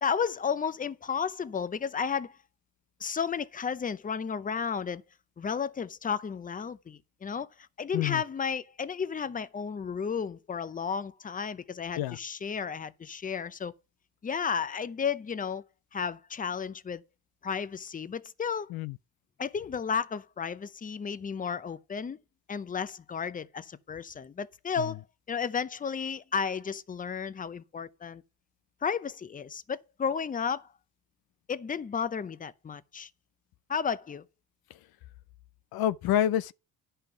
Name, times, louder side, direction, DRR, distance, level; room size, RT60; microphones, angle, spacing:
voice 1, 0.0-2.3 3.0-5.0 5.4-7.5 7.8-13.7 14.2-15.6 15.9-17.0 17.4-18.7 19.4-22.2 22.5-25.0 25.3-28.2 28.8-30.7 31.5-33.1 33.7-34.2, left 6 dB, 20° left, 0.6 m, -33 dB
voice 2, 35.7-36.5, left 11 dB, 75° left, 0.5 m, -28 dB
10.5 x 5.6 x 5.9 m
cardioid pair, 95°, 37 cm